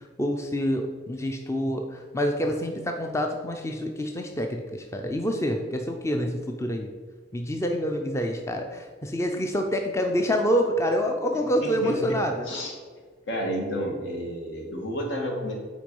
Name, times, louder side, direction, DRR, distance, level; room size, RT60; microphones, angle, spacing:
voice 1, 0.2-6.9 7.3-12.5, equal, 15° left, 3 dB, 0.5 m, -27 dB
voice 2, 11.6-12.2 12.4-12.7 13.3-15.5, equal, 75° left, 1 dB, 1.7 m, -30 dB
7.9 x 4.6 x 5.3 m, 1.5 s
head